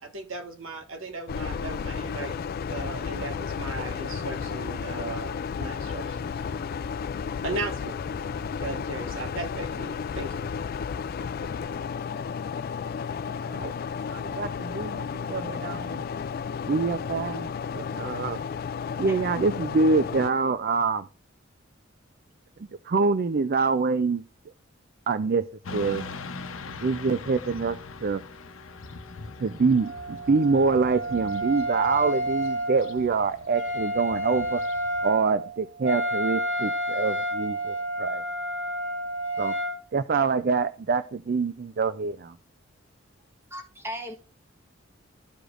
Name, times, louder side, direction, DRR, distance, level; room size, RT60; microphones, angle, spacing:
voice 1, 0.0-2.4 2.7-6.7 7.4-8.0 8.6-10.4, right 3 dB, 85° right, 1.6 m, -37 dB
sound 1, 1.3-20.3, left 6 dB, 50° left, 0.3 m, -33 dB
voice 2, 13.4-13.7 14.1-16.0 16.7-18.4 19.0-21.1 22.9-24.2 25.1-25.4 25.7-26.0 26.8-28.2 29.4-34.6 35.0-38.2 39.4-39.5 39.9-42.4, right 4 dB, 50° right, 0.4 m, -25 dB
Motorcycle / Traffic noise roadway noise, 25.6-35.0, left 3 dB, 85° left, 0.8 m, -42 dB
Wind instrument woodwind instrument, 29.8-39.8, equal, 65° right, 2.5 m, -30 dB
voice 3, 43.5-44.1, equal, 10° right, 1.3 m, -37 dB
14.0 x 5.0 x 2.5 m
head